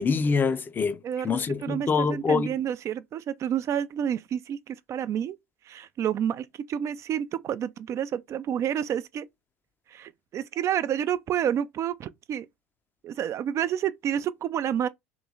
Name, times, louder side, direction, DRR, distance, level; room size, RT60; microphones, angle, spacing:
voice 1, 0.0-2.5, left 5 dB, 25° left, 0.5 m, -25 dB
voice 2, 1.0-5.4 5.7-9.2 9.9-12.5 13.0-14.9, right 9 dB, 40° right, 0.4 m, -29 dB
3.0 x 3.0 x 3.8 m
hypercardioid pair, 75°, 8 cm